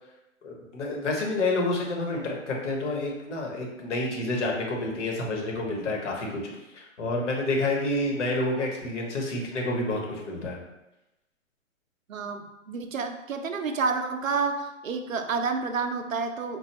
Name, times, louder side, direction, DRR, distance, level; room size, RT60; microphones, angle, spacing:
voice 1, 0.4-6.4 6.7-10.6, left 2 dB, 60° left, -1 dB, 1.1 m, -29 dB
voice 2, 12.1-16.6, right 4 dB, 75° right, 6 dB, 0.6 m, -29 dB
4.6 x 2.2 x 2.9 m, 0.95 s
figure-of-eight pair, 120°, 40 cm